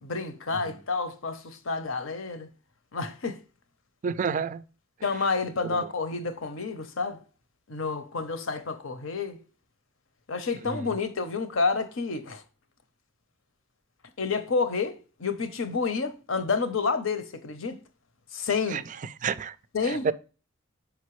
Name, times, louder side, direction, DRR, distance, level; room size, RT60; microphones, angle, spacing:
voice 1, 0.0-2.5 2.9-3.4 5.0-7.2 7.7-9.4 10.3-12.4 14.2-17.8 18.3-18.8 19.7-20.1, left 4 dB, 65° left, 0.8 m, -29 dB
voice 2, 4.0-4.6 5.7-5.9 10.7-10.9 18.7-18.8 19.2-19.6 19.8-20.1, right 6 dB, 35° right, 0.3 m, -29 dB
6.0 x 5.2 x 3.1 m
head